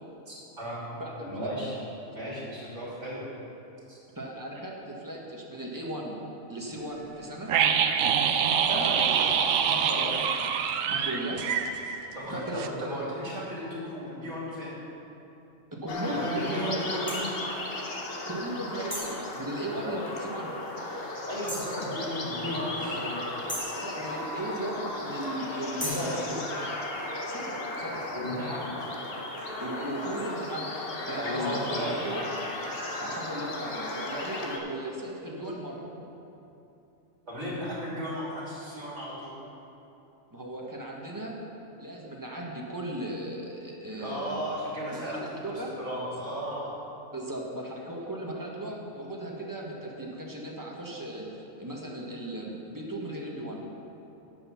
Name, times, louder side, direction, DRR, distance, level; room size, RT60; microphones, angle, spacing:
voice 1, 0.3-0.9 1.2-1.8 2.1-3.2 3.9-4.0 8.7-9.0 9.6-10.2 10.8-11.0 12.1-14.8 16.0-17.2 19.7-19.9 21.3-23.2 25.8-26.2 28.1-28.9 31.2-32.0 37.3-39.3 43.9-46.8, equal, 55° right, -6 dB, 3.3 m, -35 dB
voice 2, 0.9-1.5 4.1-6.2 6.5-7.5 8.7-9.3 9.9-10.2 10.9-11.4 12.2-13.1 15.7-16.8 18.2-20.6 23.7-26.4 27.3-28.0 29.6-30.7 31.1-32.3 33.0-35.8 40.3-41.3 41.8-44.4 44.9-45.7 47.1-53.7, right 1 dB, 15° right, -2 dB, 1.3 m, -37 dB
sound 1, 7.5-12.3 12.6-12.7, right 7 dB, 75° right, 1.0 m, -25 dB
sound 2, 15.9-34.6, left 2 dB, 45° left, 1.1 m, -35 dB
sound 3, 17.1-17.2 18.9-19.2 21.5-21.8 23.5-23.8 25.8-26.1, equal, 10° left, 1.8 m, -35 dB
10.5 x 7.8 x 5.7 m, 2.9 s
omnidirectional pair, 1.4 m